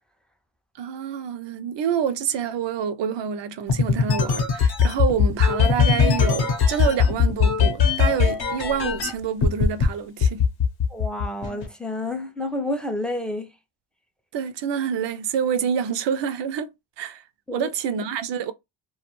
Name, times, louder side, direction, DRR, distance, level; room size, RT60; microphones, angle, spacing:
voice 1, 0.8-10.5 14.3-16.7 17.0-17.2 17.5-18.5, right 8 dB, 60° right, 0.5 m, -27 dB
sound 1, 3.7-9.1 9.4-9.9 10.2-11.7, left 6 dB, 45° left, 0.8 m, -19 dB
voice 2, 10.9-13.5 17.5-17.7, left 1 dB, ahead, 0.4 m, -29 dB
2.3 x 2.2 x 2.9 m
cardioid pair, 100°, 50 cm